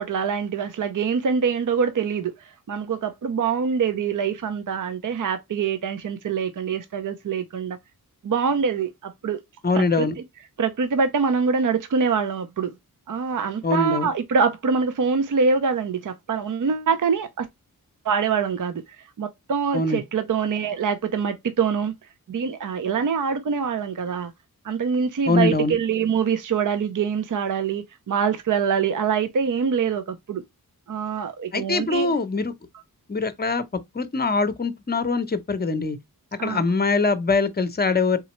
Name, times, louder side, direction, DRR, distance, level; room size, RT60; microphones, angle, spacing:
voice 1, 0.0-7.8 8.2-9.4 9.7-10.1 10.6-12.7 13.1-17.5 18.0-18.8 19.2-21.9 22.3-24.3 24.6-30.4 30.9-32.1 36.4-36.6, right 6 dB, 60° right, 0.6 m, -24 dB
voice 2, 9.6-10.2 13.6-14.1 19.7-20.0 25.3-25.7 31.5-32.5 33.1-33.6 33.9-36.0 36.4-38.2, left 3 dB, 25° left, 0.7 m, -23 dB
4.1 x 3.7 x 3.0 m
wide cardioid pair, 95°, 36 cm